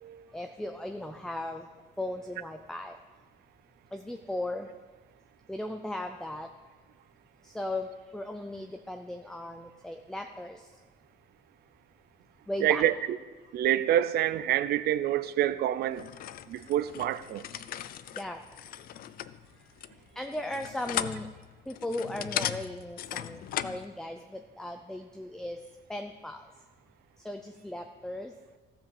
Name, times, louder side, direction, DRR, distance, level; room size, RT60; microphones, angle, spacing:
voice 1, 0.3-1.7 2.0-3.0 3.9-4.7 5.5-6.5 7.4-10.8 12.5-12.8 18.2-18.4 19.5-21.3 21.7-25.6 25.9-26.5 27.2-28.3, left 1 dB, 5° left, 0.4 m, -37 dB
voice 2, 12.6-12.9 13.5-16.1 16.5-17.5, right 12 dB, 65° right, 0.5 m, -27 dB
sound 1, 15.9-23.8, left 11 dB, 60° left, 0.4 m, -37 dB
14.5 x 5.1 x 7.1 m
cardioid pair, 145°, 17 cm